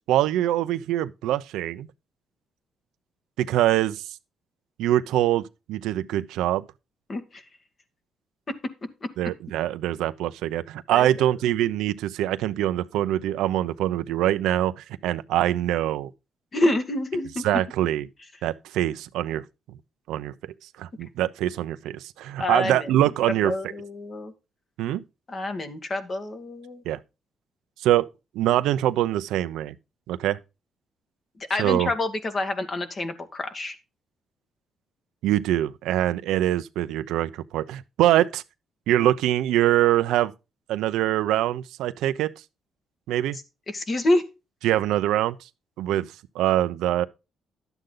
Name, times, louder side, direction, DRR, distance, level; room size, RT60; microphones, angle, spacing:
voice 1, 0.1-1.9 3.4-4.0 4.8-5.4 5.7-6.6 9.2-16.1 17.4-18.0 18.4-19.4 20.1-20.3 20.8-23.7 24.8-25.0 26.9-27.0 27.8-28.1 28.3-29.7 30.1-30.4 31.6-31.9 35.2-38.4 38.9-40.3 40.7-42.3 43.1-43.4 44.6-45.4 45.8-46.1 46.3-47.0, right 13 dB, 90° right, 0.7 m, -24 dB
voice 2, 7.1-7.4 10.9-11.1 16.5-17.4 22.4-23.1 23.4-24.3 25.3-26.8 31.5-33.8 43.7-44.2, left 2 dB, 40° left, 1.9 m, -27 dB
12.0 x 8.0 x 3.9 m
cardioid pair, 90°, 0 cm